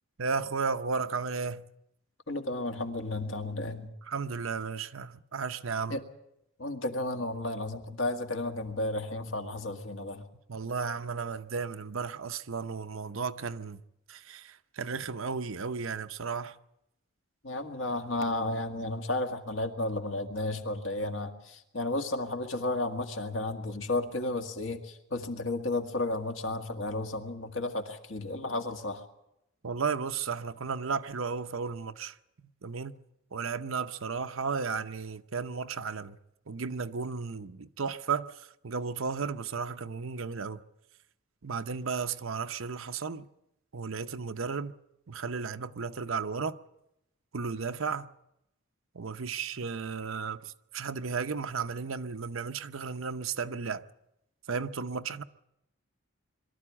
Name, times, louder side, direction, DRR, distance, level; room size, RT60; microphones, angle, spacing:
voice 1, 0.2-1.7 4.1-6.0 10.5-13.8 14.1-16.5 29.6-32.1 32.6-32.9 33.3-36.2 36.5-38.3 38.6-40.6 41.4-43.3 43.7-44.7 45.1-46.6 47.3-48.1 48.9-53.8 54.5-55.2, right 5 dB, 70° right, 0.8 m, -34 dB
voice 2, 2.3-3.9 5.9-6.0 6.6-10.2 17.4-29.0, left 2 dB, 60° left, 1.9 m, -33 dB
23.0 x 13.5 x 9.8 m
head